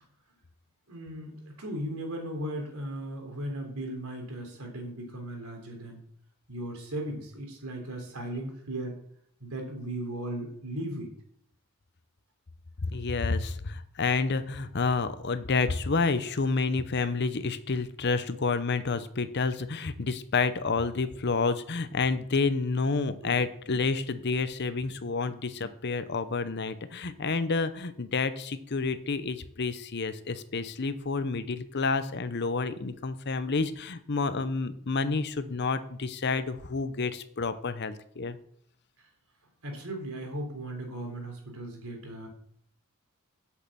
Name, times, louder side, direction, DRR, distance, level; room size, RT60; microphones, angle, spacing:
voice 1, 0.9-6.0 6.5-9.0 9.4-11.1 23.2-23.4 39.6-42.3, right 1 dB, 75° right, 1 dB, 3.5 m, -37 dB
voice 2, 12.8-38.4, left 4 dB, 50° left, 12 dB, 0.7 m, -29 dB
8.5 x 6.5 x 7.4 m, 0.67 s
head